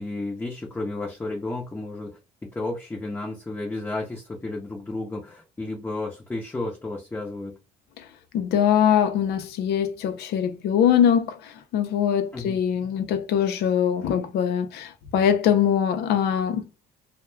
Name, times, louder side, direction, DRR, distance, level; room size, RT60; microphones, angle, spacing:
voice 1, 0.0-7.6 12.3-12.6, left 2 dB, 10° left, 0.6 m, -32 dB
voice 2, 8.3-11.3 11.7-16.6, left 9 dB, 75° left, 0.5 m, -22 dB
2.3 x 2.1 x 3.2 m
cardioid pair, 110°, 17 cm